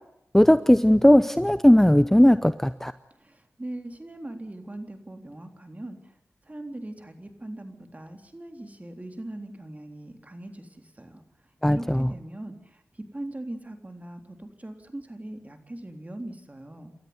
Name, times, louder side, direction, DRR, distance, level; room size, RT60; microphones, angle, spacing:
voice 1, 0.3-2.9 11.6-12.1, equal, 5° left, 13 dB, 0.8 m, -17 dB
voice 2, 3.2-6.2 6.4-17.0, right 1 dB, 30° right, 6 dB, 3.6 m, -40 dB
28.0 x 13.0 x 9.6 m, 0.80 s
cardioid pair, 50°, 5 cm